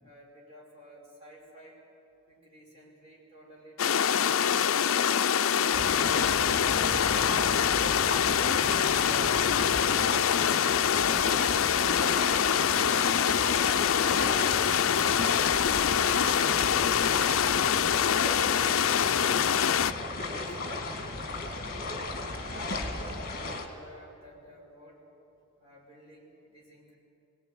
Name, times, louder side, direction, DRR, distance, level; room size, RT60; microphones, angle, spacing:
voice 1, 0.0-1.8 2.3-4.6 16.4-18.3 19.5-21.8 22.3-25.0 25.6-26.9, equal, 25° right, -3 dB, 6.1 m, -52 dB
sound 1, 3.8-19.9, left 8 dB, 65° left, 0.5 m, -25 dB
sound 2, 5.7-23.7, left 2 dB, 40° left, 2.2 m, -35 dB
sound 3, 6.0-9.0, left 1 dB, 75° right, 4.4 m, -47 dB
voice 2, 6.6-7.8 8.1-9.1, left 2 dB, 20° left, 2 dB, 0.8 m, -45 dB
22.5 x 18.5 x 9.5 m, 2.9 s
head